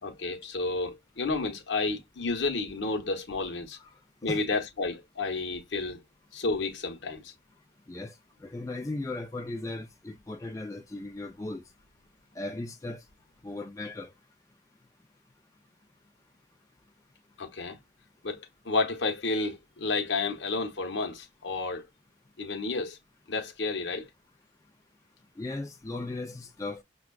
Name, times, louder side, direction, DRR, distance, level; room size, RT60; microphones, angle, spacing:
voice 1, 0.0-3.8 4.2-6.0 6.3-7.3 17.4-17.8 18.2-21.9 22.4-23.0 23.3-24.1, left 3 dB, 75° left, 0.8 m, -31 dB
voice 2, 8.4-11.6 12.4-13.0 13.4-14.1 25.4-26.8, left 2 dB, 15° left, 0.3 m, -37 dB
5.9 x 2.3 x 2.2 m
head